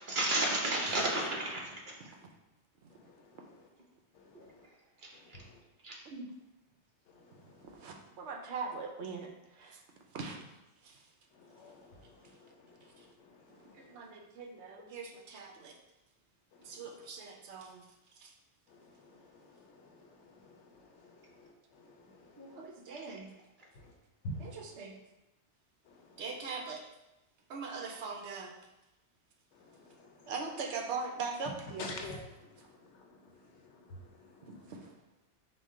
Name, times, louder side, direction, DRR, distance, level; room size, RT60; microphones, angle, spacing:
voice 1, 0.1-2.1 4.3-4.5 5.0-5.4 5.8-5.9 22.4-22.6, right 1 dB, 50° right, -2 dB, 0.9 m, -33 dB
voice 2, 2.9-3.7 4.1-4.7 5.1-5.6 7.1-7.9 11.3-14.0 16.5-16.8 18.7-22.7 23.8-23.9 24.2-24.7 25.9-26.2 29.5-30.3 31.8-34.7, left 2 dB, 80° left, 2 dB, 1.0 m, -50 dB
voice 3, 7.7-9.8 10.1-10.4 10.8-11.0 13.7-15.7 16.6-17.8 18.2-18.3 22.5-23.3 24.4-24.9 26.2-26.8 27.5-28.5 30.3-31.9 34.5-34.9, right 4 dB, 75° right, 2 dB, 0.9 m, -41 dB
4.9 x 2.2 x 3.6 m, 0.94 s
omnidirectional pair, 1.2 m